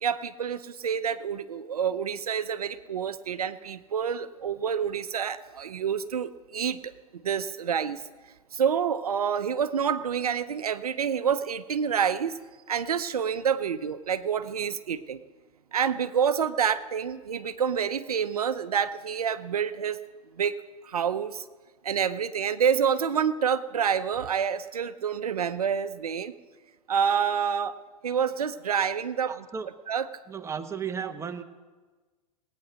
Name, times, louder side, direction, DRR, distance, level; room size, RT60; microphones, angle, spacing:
voice 1, 0.0-6.9 7.2-8.0 8.5-12.4 12.7-15.2 15.7-20.0 20.3-20.6 20.8-21.4 21.8-26.3 26.9-27.7 28.0-29.3 29.9-30.1 31.0-31.1, right 7 dB, 85° right, 11 dB, 0.7 m, -28 dB
voice 2, 29.3-29.7 30.3-31.4, right 7 dB, 15° right, 7 dB, 1.0 m, -34 dB
18.0 x 9.1 x 6.3 m, 1.3 s
hypercardioid pair, 100°, 19 cm